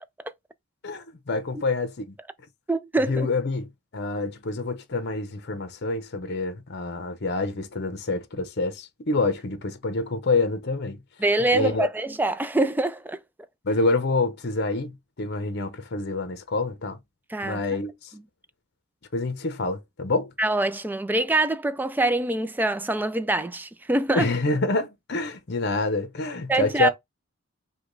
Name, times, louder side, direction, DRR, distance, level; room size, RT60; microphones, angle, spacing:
voice 1, 0.8-2.2 3.1-11.0 11.5-11.9 13.6-17.0 17.4-18.1 19.1-20.3 24.1-26.9, left 3 dB, 55° left, 0.8 m, -27 dB
voice 2, 2.7-3.3 11.2-13.2 17.3-17.6 18.1-18.2 20.4-24.3 26.5-26.9, right 2 dB, 10° right, 0.3 m, -24 dB
5.0 x 2.3 x 3.9 m
head